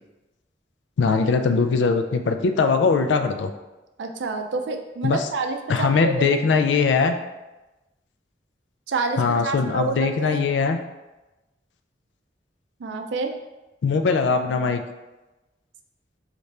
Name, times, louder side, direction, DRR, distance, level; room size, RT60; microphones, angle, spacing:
voice 1, 1.0-3.5 5.0-5.3 5.7-7.1 9.2-10.8 13.8-14.8, left 4 dB, 85° left, 7 dB, 0.4 m, -21 dB
voice 2, 4.0-6.2 8.9-10.5 12.8-13.3, right 3 dB, 80° right, 5 dB, 0.4 m, -28 dB
4.1 x 2.5 x 3.2 m, 1.1 s
head